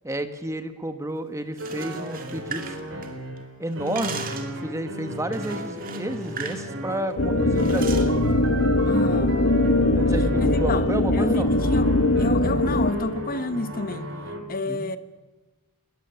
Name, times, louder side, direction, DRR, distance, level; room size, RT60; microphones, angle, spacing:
voice 1, 0.0-2.7 3.6-8.2 9.9-11.5 14.6-14.9, right 1 dB, 15° right, 1.2 m, -31 dB
sound 1, 1.5-3.4 3.7-4.6 5.3-6.6 6.9-7.1 7.6-8.1, right 6 dB, 40° right, 2.3 m, -37 dB
sound 2, 1.6-14.4, equal, 60° right, 4.9 m, -35 dB
sound 3, 7.2-12.9, left 1 dB, 70° left, 1.4 m, -21 dB
voice 2, 8.8-9.4 10.4-11.9 12.2-14.1 14.5-15.0, left 2 dB, 40° left, 1.1 m, -29 dB
20.0 x 20.0 x 6.9 m
head